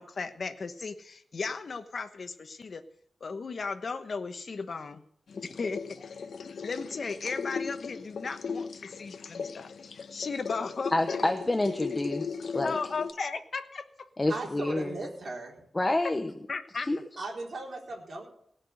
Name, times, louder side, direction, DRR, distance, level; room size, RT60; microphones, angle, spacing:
voice 1, 0.0-2.8 3.2-5.0 5.4-6.1 6.6-9.7 10.1-11.2 12.6-14.1 16.5-16.9, left 4 dB, 50° left, 9 dB, 1.2 m, -36 dB
sound 1, 5.3-13.1, left 5 dB, 75° left, 0.9 m, -37 dB
voice 2, 10.9-12.8 14.2-15.0 15.7-16.3 16.8-17.0, left 2 dB, 20° left, 6 dB, 0.9 m, -28 dB
voice 3, 14.3-15.6 17.2-18.3, right 3 dB, 50° right, -1 dB, 4.1 m, -37 dB
18.0 x 6.0 x 7.9 m, 0.68 s
wide cardioid pair, 120°, 0 cm